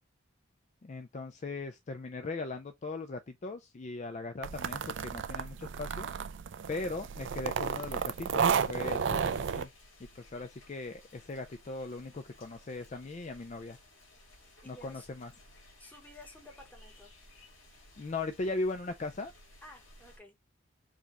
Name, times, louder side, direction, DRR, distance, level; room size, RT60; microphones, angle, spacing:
voice 1, 0.8-6.1 6.7-9.7 10.1-13.8 14.7-15.3 18.0-19.3, left 3 dB, 35° left, 0.4 m, -39 dB
sound 1, 4.4-9.6, right 6 dB, 65° right, 0.4 m, -32 dB
sound 2, 7.5-20.2, left 1 dB, 80° left, 2.0 m, -58 dB
voice 2, 14.6-15.1 15.8-17.1 19.6-20.4, left 1 dB, 10° left, 1.0 m, -53 dB
4.8 x 2.3 x 2.9 m
head